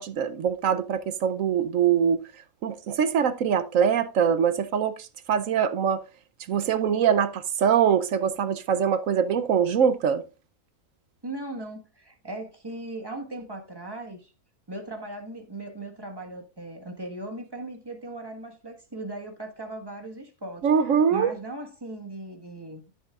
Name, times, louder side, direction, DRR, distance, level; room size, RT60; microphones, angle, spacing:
voice 1, 0.0-2.2 2.6-6.0 6.5-10.2 20.6-21.3, right 7 dB, 65° right, 0.9 m, -23 dB
voice 2, 11.2-14.3 14.7-22.8, right 1 dB, 15° right, 1.4 m, -38 dB
14.0 x 7.3 x 2.4 m
omnidirectional pair, 1.6 m